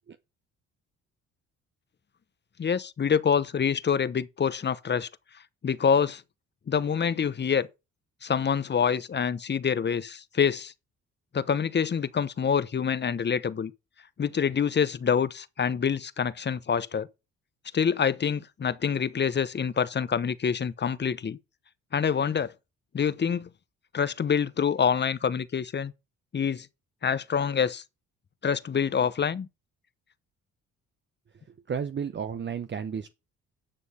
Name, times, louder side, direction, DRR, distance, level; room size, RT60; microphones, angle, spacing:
voice 1, 2.6-5.1 5.6-6.2 6.7-7.7 8.2-10.7 11.3-13.7 14.2-17.1 17.7-21.4 21.9-22.5 22.9-23.5 23.9-25.9 26.3-26.7 27.0-27.8 28.4-29.5, left 7 dB, 35° left, 0.9 m, -26 dB
voice 2, 31.7-33.1, right 7 dB, 40° right, 0.9 m, -32 dB
10.0 x 6.3 x 5.6 m
cardioid pair, 90°, 30 cm